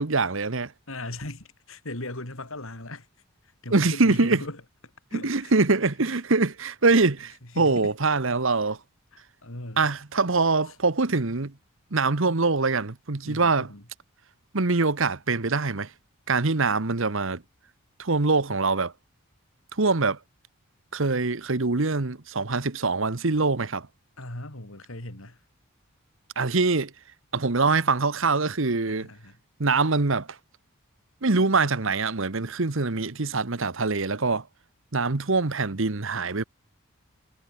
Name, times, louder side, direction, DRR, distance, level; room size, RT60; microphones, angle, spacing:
voice 1, 0.0-0.7 3.7-4.4 5.2-8.8 9.8-11.5 11.9-13.7 14.5-15.9 16.3-17.4 18.0-18.9 19.8-20.2 20.9-23.9 26.4-26.9 27.3-29.1 29.6-30.3 31.2-34.4 34.9-36.4, right 3 dB, 60° right, 1.2 m, -24 dB
voice 2, 0.9-3.1 3.4-4.6 5.1-5.5 7.4-7.9 9.1-9.9 10.7-10.8 13.2-13.9 24.2-25.4 28.9-29.4, left 1 dB, 70° left, 4.3 m, -38 dB
head